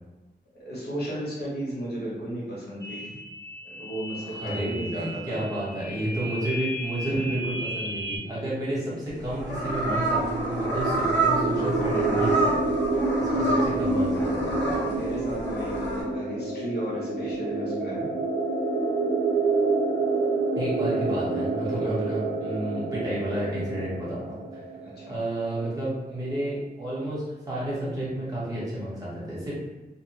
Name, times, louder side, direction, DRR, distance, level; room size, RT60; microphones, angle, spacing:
voice 1, 0.6-3.2 3.8-5.4 7.0-7.2 14.7-18.1 24.8-25.1, right 1 dB, 65° left, -7 dB, 1.0 m, -34 dB
sound 1, 2.8-8.2, equal, 20° left, 0.6 m, -36 dB
voice 2, 4.2-12.5 12.9-14.8 20.5-24.6 25.1-29.5, right 1 dB, 20° right, -9 dB, 1.0 m, -31 dB
sound 2, 9.2-16.0, right 2 dB, 85° left, 0.6 m, -29 dB
sound 3, 9.4-25.1, right 3 dB, 60° right, 0.5 m, -28 dB
2.4 x 2.2 x 2.9 m, 1.1 s
wide cardioid pair, 165°, 18 cm